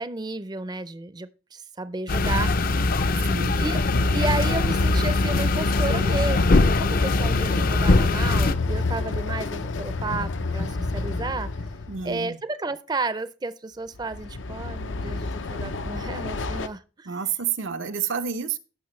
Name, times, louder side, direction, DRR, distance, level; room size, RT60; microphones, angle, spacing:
voice 1, 0.0-3.1 3.6-3.8 4.1-11.5 12.0-17.2, right 3 dB, 20° right, 0.5 m, -32 dB
sound 1, 2.1-8.6, left 2 dB, 50° left, 0.5 m, -22 dB
voice 2, 3.2-3.6 11.9-12.4 17.0-18.6, right 7 dB, 90° right, 0.9 m, -29 dB
Train, 3.6-12.1 13.9-16.7, left 3 dB, 80° left, 0.7 m, -29 dB
15.5 x 6.0 x 3.2 m
head